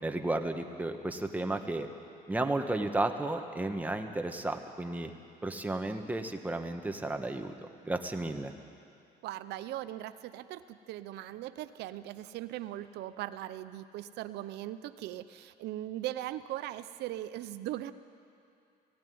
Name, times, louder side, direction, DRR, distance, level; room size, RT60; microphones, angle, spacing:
voice 1, 0.0-1.9 2.3-5.1 5.4-8.5, right 2 dB, 10° right, 5 dB, 1.4 m, -33 dB
voice 2, 9.2-17.9, right 14 dB, 80° right, 12 dB, 0.7 m, -39 dB
16.5 x 16.5 x 9.4 m, 2.5 s
cardioid pair, 110°, 17 cm